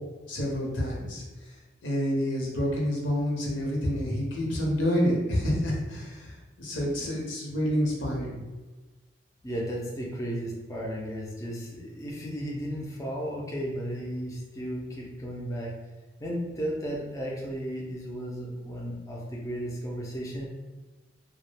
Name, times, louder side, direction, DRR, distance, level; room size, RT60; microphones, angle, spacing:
voice 1, 0.3-1.2 1.8-6.3 6.6-8.4, equal, 90° left, -2 dB, 0.7 m, -28 dB
voice 2, 9.4-15.7 16.2-20.5, equal, 15° left, -3 dB, 0.3 m, -34 dB
2.3 x 2.0 x 3.2 m, 1.2 s
head